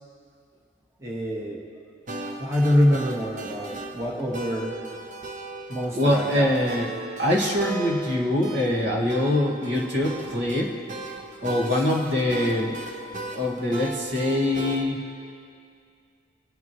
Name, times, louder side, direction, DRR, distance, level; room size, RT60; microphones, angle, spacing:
voice 1, 1.0-1.6 2.4-4.7 5.7-6.5 11.7-11.8, left 1 dB, 15° right, -2 dB, 1.3 m, -25 dB
sound 1, 2.1-14.8, right 2 dB, 40° right, 0.9 m, -37 dB
voice 2, 6.0-6.9 7.2-10.8 11.4-12.7 13.3-15.0, left 1 dB, 65° right, -2 dB, 2.0 m, -23 dB
25.5 x 9.6 x 3.1 m, 2.4 s
head